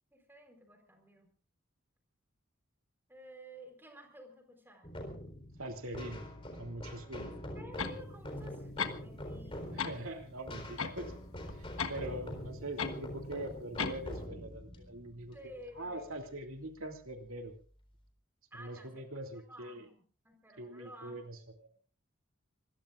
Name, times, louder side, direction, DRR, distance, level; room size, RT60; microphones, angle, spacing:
voice 1, 0.1-1.3 3.1-4.9 7.2-10.0 15.3-16.1 18.5-21.3, equal, 10° right, 4 dB, 4.3 m, -53 dB
sound 1, 4.8-16.2, left 1 dB, 25° left, 4.0 m, -44 dB
voice 2, 5.6-6.2 6.6-7.3 9.7-11.1 11.5-17.5 18.6-19.9 20.6-21.4, right 1 dB, 80° right, 4 dB, 2.7 m, -43 dB
sound 2, 7.8-8.0 8.8-9.3 9.6-10.0 10.8-11.9 12.8-13.0 13.8-14.1, left 6 dB, 80° left, 1.5 m, -36 dB
26.0 x 21.5 x 2.5 m, 0.39 s
head